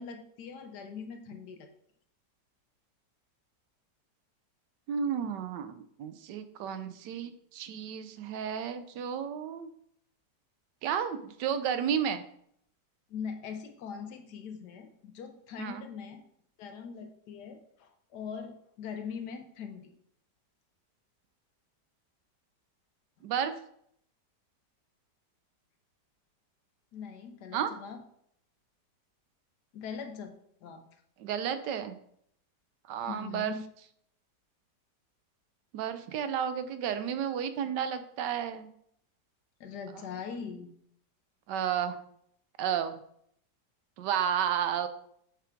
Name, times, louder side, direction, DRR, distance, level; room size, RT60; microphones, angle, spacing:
voice 1, 0.0-1.7 13.1-16.2 16.6-19.9 26.9-28.0 29.7-30.3 30.6-30.9 33.1-33.7 39.6-40.8, left 6 dB, 70° left, 6 dB, 1.3 m, -41 dB
voice 2, 4.9-9.7 10.8-12.2 15.6-15.8 23.2-23.5 27.5-27.7 31.2-32.0 32.9-33.5 35.7-38.7 41.5-42.0 42.6-43.0 44.0-44.9, right 8 dB, 85° right, 10 dB, 1.2 m, -32 dB
6.8 x 4.5 x 3.7 m, 0.68 s
omnidirectional pair, 1.9 m